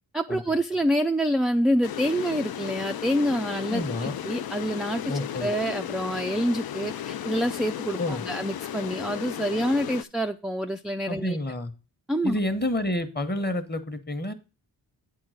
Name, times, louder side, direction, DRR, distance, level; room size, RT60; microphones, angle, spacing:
voice 1, 0.1-11.4 12.1-12.4, equal, ahead, 0.3 m, -27 dB
sound 1, 1.8-10.0, left 10 dB, 60° left, 0.5 m, -34 dB
voice 2, 3.7-4.2 5.1-5.5 8.0-8.2 11.1-11.7 12.2-14.3, left 1 dB, 25° left, 1.0 m, -29 dB
8.7 x 3.8 x 6.3 m
cardioid pair, 60°, 42 cm